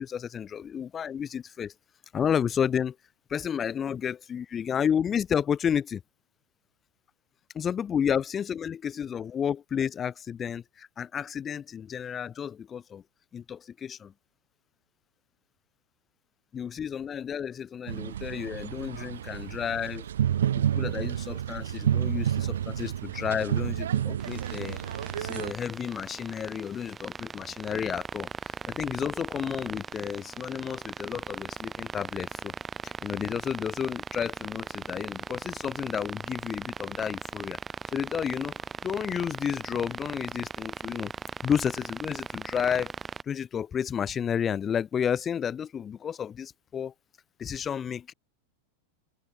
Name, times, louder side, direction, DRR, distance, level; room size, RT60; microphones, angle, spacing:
voice 1, 0.0-1.7 2.1-3.0 3.3-6.0 7.5-13.0 13.3-14.1 16.5-20.1 20.5-24.8 25.2-32.5 32.8-37.6 37.9-41.1 41.4-42.9 43.3-46.9 47.4-48.1, left 8 dB, 25° left, 1.0 m, -31 dB
sound 1, 17.9-25.5, right 10 dB, 65° right, 1.1 m, -30 dB
sound 2, 24.2-43.2, right 6 dB, 15° right, 1.5 m, -39 dB
open air
figure-of-eight pair, 90°, 0 cm